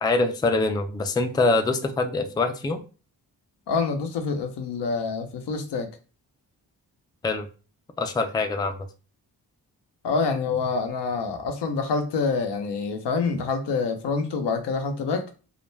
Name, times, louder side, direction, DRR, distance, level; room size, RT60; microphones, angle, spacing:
voice 1, 0.0-2.8 7.2-7.5 8.0-8.9, left 3 dB, 10° left, 6 dB, 0.4 m, -24 dB
voice 2, 3.7-5.9 10.0-15.3, left 4 dB, 75° left, 5 dB, 0.6 m, -26 dB
2.4 x 2.1 x 3.1 m, 0.35 s
cardioid pair, 50°, 41 cm